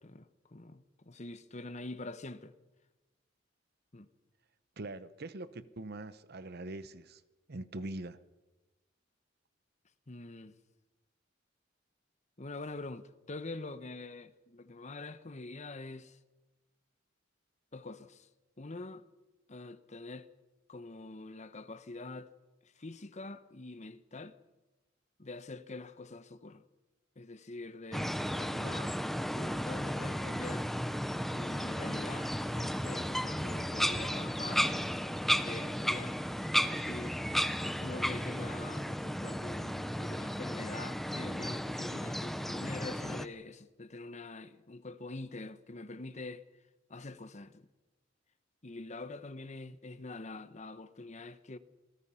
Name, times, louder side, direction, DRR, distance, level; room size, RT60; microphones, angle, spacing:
voice 1, 0.0-2.5 3.9-4.1 10.1-10.5 12.4-16.2 17.7-18.3 18.6-19.0 19.5-20.3 20.7-22.3 22.8-24.3 25.2-26.6 27.2-29.0 29.3-30.7 31.3-34.7 35.4-36.2 36.6-37.2 37.6-46.4 46.9-47.7 48.6-51.6, left 2 dB, 35° left, 1.0 m, -45 dB
voice 2, 4.8-7.2 7.5-8.2, right 2 dB, 55° right, 0.9 m, -42 dB
sound 1, 27.9-43.3, equal, ahead, 0.8 m, -34 dB
27.0 x 18.5 x 5.7 m
head